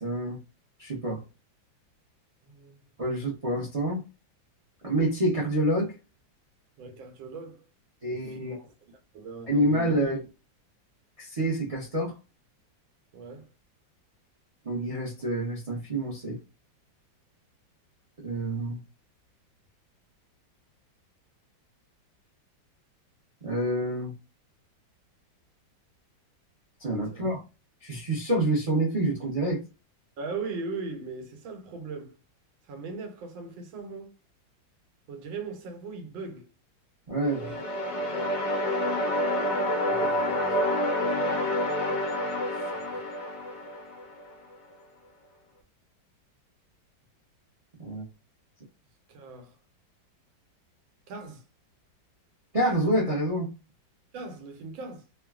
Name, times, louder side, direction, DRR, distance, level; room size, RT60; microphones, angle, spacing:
voice 1, 0.0-0.4 0.8-1.2 3.0-4.0 4.8-5.9 8.0-8.6 9.5-10.2 11.2-12.1 14.6-16.4 18.2-18.8 23.4-24.1 26.8-27.4 27.8-29.6 37.1-37.5 47.8-48.0 52.5-53.5, right 1 dB, 50° right, 0.4 m, -27 dB
voice 2, 2.4-2.8 6.8-7.6 8.1-8.7 9.1-10.1 13.1-13.5 27.1-27.4 30.2-32.2 32.7-34.1 35.1-36.5 37.2-37.7 39.9-40.7 42.6-43.0 49.1-49.6 51.1-51.4 54.1-55.0, right 4 dB, 90° right, 1.6 m, -39 dB
sound 1, 37.3-44.3, left 1 dB, 80° left, 0.4 m, -28 dB
3.5 x 2.2 x 2.3 m
omnidirectional pair, 2.1 m